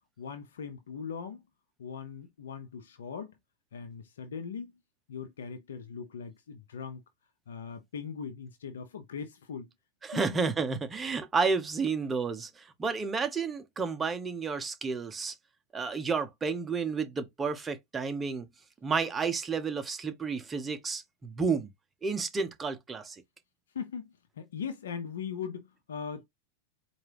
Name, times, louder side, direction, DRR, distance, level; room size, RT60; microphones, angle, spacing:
voice 1, 0.2-1.4 1.8-3.3 3.7-4.7 5.1-7.0 7.5-9.7 10.1-10.4 23.7-26.2, left 6 dB, 80° left, 0.7 m, -40 dB
voice 2, 10.0-15.3 15.7-18.5 18.8-21.7 22.0-23.2, right 5 dB, 20° right, 0.9 m, -31 dB
4.4 x 2.5 x 3.4 m
hypercardioid pair, 110°, 0 cm